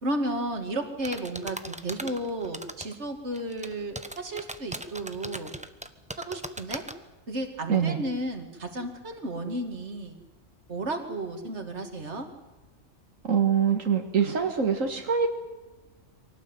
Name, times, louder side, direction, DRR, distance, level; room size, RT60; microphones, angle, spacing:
voice 1, 0.0-5.5 6.2-6.8 7.3-10.2 10.7-12.3, right 1 dB, 60° right, 5 dB, 2.8 m, -33 dB
sound 1, 1.0-3.0 3.3-6.9, right 1 dB, 5° right, 1.0 m, -38 dB
voice 2, 7.7-8.0 13.2-15.3, right 7 dB, 85° right, 3 dB, 2.1 m, -24 dB
24.0 x 18.0 x 9.1 m, 1.1 s
omnidirectional pair, 1.3 m